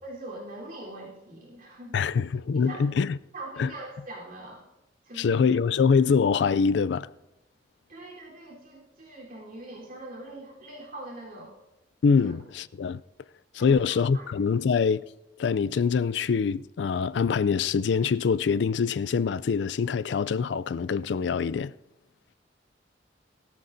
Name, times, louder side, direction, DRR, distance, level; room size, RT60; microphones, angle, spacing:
voice 1, 0.0-2.2 2.6-2.9 3.3-4.6 5.0-5.5 7.9-11.5 12.2-12.3 13.6-14.3, right 2 dB, 50° right, 3.7 m, -42 dB
voice 2, 1.9-3.2 3.6-3.7 5.2-7.1 12.0-13.0 13.5-15.0 15.4-21.7, left 5 dB, 65° left, 0.4 m, -24 dB
20.0 x 13.5 x 2.7 m
head